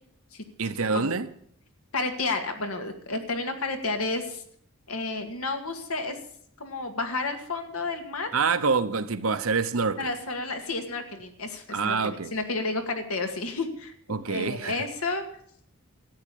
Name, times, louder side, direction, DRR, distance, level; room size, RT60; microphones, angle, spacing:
voice 1, 0.6-1.3 8.3-10.1 11.7-12.3 14.1-14.8, right 4 dB, 75° right, 0.9 m, -26 dB
voice 2, 1.9-4.4 4.9-6.2 6.6-8.3 10.0-13.9 14.3-15.2, left 3 dB, 90° left, 2.1 m, -31 dB
13.5 x 8.8 x 8.4 m
head